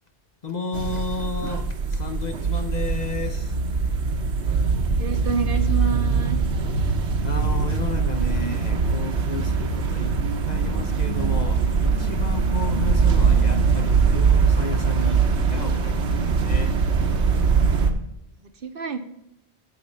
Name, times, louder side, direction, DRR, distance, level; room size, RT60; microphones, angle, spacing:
voice 1, 0.4-3.5 7.2-10.2 10.5-16.8, left 3 dB, 45° left, 0.7 m, -32 dB
sound 1, 0.7-17.9, right 5 dB, 80° right, 1.2 m, -22 dB
voice 2, 5.0-6.4 18.6-19.0, right 4 dB, 60° right, 0.9 m, -28 dB
10.0 x 4.2 x 7.0 m
omnidirectional pair, 1.1 m